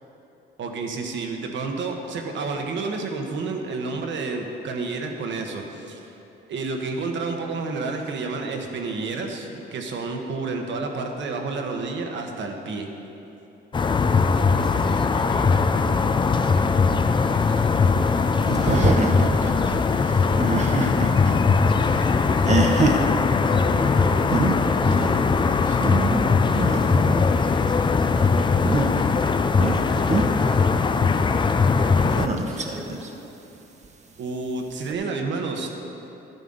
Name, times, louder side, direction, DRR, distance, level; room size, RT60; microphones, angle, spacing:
voice 1, 0.6-6.1 6.5-12.9 34.2-35.7, right 3 dB, 65° right, 3 dB, 1.2 m, -30 dB
sound 1, 13.7-32.3, left 4 dB, 25° left, 0.4 m, -20 dB
voice 2, 14.4-21.3 21.9-22.3 23.6-33.1, equal, 5° left, -1 dB, 1.5 m, -39 dB
sound 2, 17.4-21.3 21.6-23.0 24.0-24.1 24.3-24.6 24.9-25.2 25.6-27.4 28.5-29.1 29.6-30.3 32.0-33.1 33.8-33.9 34.9-35.0, right 3 dB, 35° right, 0.9 m, -26 dB
11.0 x 9.2 x 3.9 m, 3.0 s
cardioid pair, 90°, 20 cm